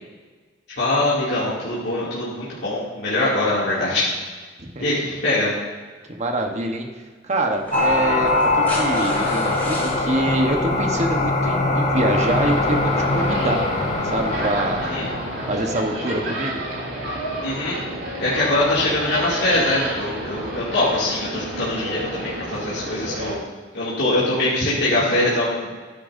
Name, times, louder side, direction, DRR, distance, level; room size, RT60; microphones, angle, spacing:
voice 1, 0.8-4.1 4.8-5.5 14.9-15.1 17.4-17.8 18.2-23.4 23.7-25.8, left 2 dB, 65° left, -9 dB, 2.6 m, -23 dB
voice 2, 6.1-6.9 7.2-13.7 14.0-14.9 15.5-16.6, right 1 dB, 40° right, 3 dB, 1.2 m, -25 dB
sound 1, 6.4-6.5 7.5-10.0 11.5-11.6, left 1 dB, 10° left, 3.4 m, -35 dB
sound 2, 7.7-15.7, left 2 dB, 40° left, 1.4 m, -22 dB
sound 3, 12.1-23.4, right 1 dB, 80° right, 2.7 m, -30 dB
13.0 x 10.0 x 2.7 m, 1.4 s
head